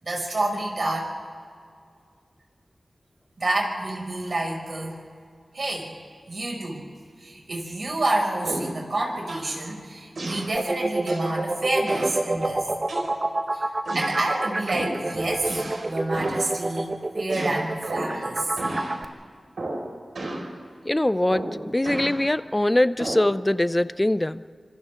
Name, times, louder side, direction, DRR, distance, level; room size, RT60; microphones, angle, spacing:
voice 1, 0.0-1.1 3.4-5.0 5.5-6.0 6.3-6.8 7.2-12.7 13.5-13.6 13.9-15.5 15.9-18.5, right 2 dB, 60° right, -1 dB, 5.9 m, -28 dB
sound 1, 8.4-8.8 9.3-9.5 10.2-10.5 11.1-11.3 11.9-12.2 12.9-13.4 13.9-14.2 14.7-15.0 15.4-16.5 17.3-18.2 18.6-19.0 19.6-19.9 20.2-20.5 21.3-22.2 23.0-23.3, right 1 dB, 90° right, 5.2 m, -32 dB
sound 2, 10.6-19.0, right 2 dB, 35° right, 1.0 m, -28 dB
voice 2, 20.8-24.4, left 1 dB, 20° left, 15 dB, 0.5 m, -23 dB
28.5 x 25.5 x 3.7 m, 2.1 s
wide cardioid pair, 70°, 0 cm